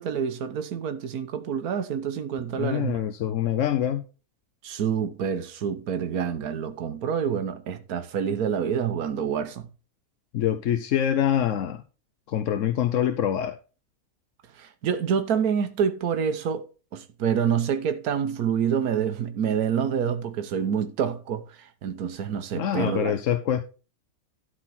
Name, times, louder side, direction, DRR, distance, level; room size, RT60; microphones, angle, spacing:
voice 1, 0.0-3.0 4.6-9.7 14.6-16.6 16.9-23.2, right 7 dB, 85° right, 1.4 m, -27 dB
voice 2, 2.5-4.0 10.3-11.8 12.3-13.6 22.5-23.6, left 10 dB, 65° left, 1.0 m, -25 dB
12.5 x 4.3 x 5.9 m
omnidirectional pair, 1.6 m